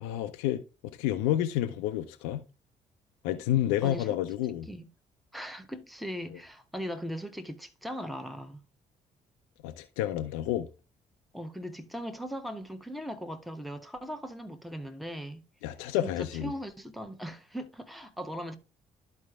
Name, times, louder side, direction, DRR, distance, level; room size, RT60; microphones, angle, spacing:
voice 1, 0.0-0.6 1.0-2.4 3.2-4.7 9.6-10.7 15.6-16.5, left 12 dB, 65° left, 0.5 m, -29 dB
voice 2, 3.8-4.2 4.7-4.9 5.3-8.6 11.3-15.4 16.0-18.6, equal, ahead, 1.1 m, -39 dB
13.0 x 4.8 x 2.4 m
figure-of-eight pair, 45°, 21 cm